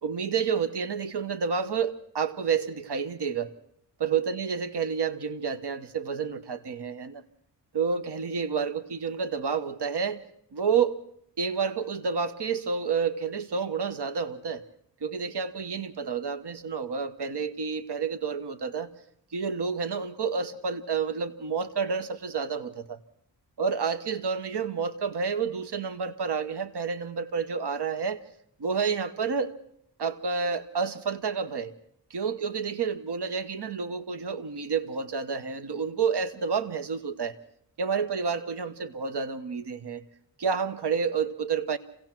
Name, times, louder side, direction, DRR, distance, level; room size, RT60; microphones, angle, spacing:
voice 1, 0.0-3.5 4.0-7.2 7.7-10.2 10.5-11.0 11.4-14.7 15.0-18.9 19.3-23.0 23.6-28.2 28.6-29.5 30.0-31.7 32.1-37.4 37.8-40.0 40.4-41.8, right 6 dB, 60° right, 10 dB, 1.2 m, -29 dB
26.5 x 16.5 x 6.0 m, 0.71 s
cardioid pair, 50°, 44 cm